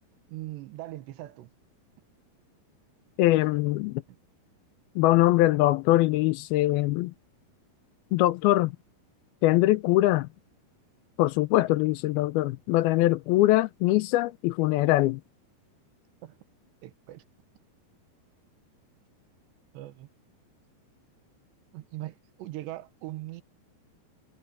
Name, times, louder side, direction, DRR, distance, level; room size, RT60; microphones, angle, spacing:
voice 1, 0.3-1.5 16.2-16.4 16.8-17.2 19.7-20.1 21.7-23.4, right 16 dB, 85° right, 3.4 m, -40 dB
voice 2, 3.2-4.0 5.0-7.1 8.1-8.8 9.4-10.3 11.2-15.2, left 17 dB, 80° left, 2.2 m, -22 dB
omnidirectional pair, 4.9 m